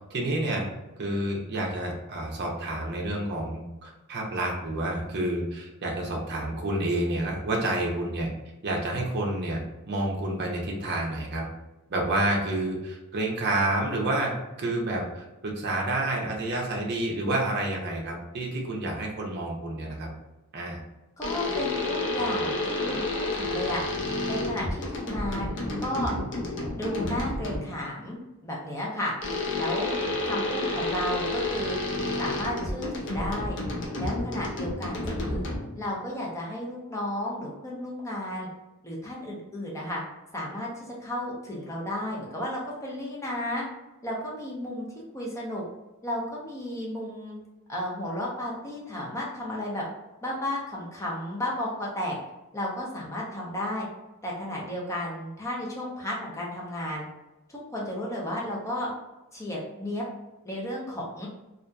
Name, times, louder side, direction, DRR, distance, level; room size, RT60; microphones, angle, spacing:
voice 1, 0.1-0.6 1.0-8.3 8.6-9.6 9.9-11.4 11.9-14.3 14.6-20.1 20.5-20.8, right 1 dB, 50° right, -1 dB, 0.6 m, -29 dB
sound 1, 21.2-27.8 29.2-35.9, left 2 dB, 55° left, 0.5 m, -30 dB
voice 2, 21.2-23.8 24.3-26.1 26.7-29.1 29.6-29.9 30.2-31.8 32.2-33.6 34.0-35.4 35.7-38.5 38.8-40.0 40.3-43.6 44.0-44.9 45.1-45.6 46.0-47.4 47.7-49.8 50.2-52.2 52.5-53.9 54.2-57.1 57.5-58.9 59.3-60.0 60.4-61.3, left 1 dB, 15° left, -4 dB, 0.6 m, -33 dB
2.7 x 2.4 x 2.3 m, 1.0 s
head